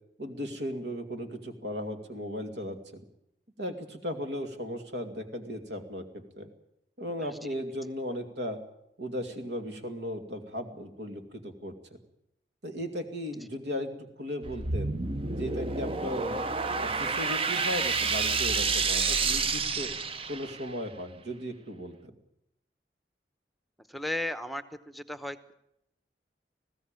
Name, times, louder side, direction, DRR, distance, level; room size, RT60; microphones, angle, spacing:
voice 1, 0.2-3.0 3.6-6.5 7.0-8.6 9.0-12.0 12.6-13.9 14.2-14.9 15.4-16.4 16.8-19.9 20.3-22.2, equal, 70° right, 7 dB, 2.4 m, -36 dB
sound 1, 14.4-20.7, right 4 dB, 30° right, 0.7 m, -29 dB
voice 2, 23.9-25.5, left 1 dB, ahead, 12 dB, 0.9 m, -35 dB
20.0 x 15.5 x 8.9 m, 0.79 s
head